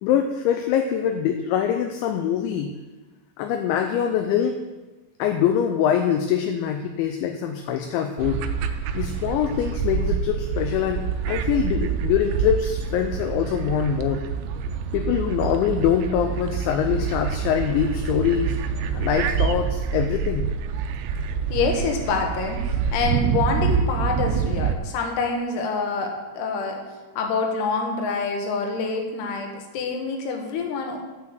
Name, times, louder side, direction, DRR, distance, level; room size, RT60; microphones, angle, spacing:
voice 1, 0.0-2.7 3.4-4.6 5.2-8.4 8.9-14.2 14.9-18.5 18.9-20.5, left 9 dB, 80° left, 5 dB, 2.8 m, -24 dB
sound 1, 8.2-24.7, right 6 dB, 80° right, 2.7 m, -26 dB
voice 2, 21.5-26.8 27.2-31.0, left 4 dB, 65° left, 2 dB, 3.1 m, -26 dB
12.0 x 6.1 x 7.7 m, 1.2 s
omnidirectional pair, 5.8 m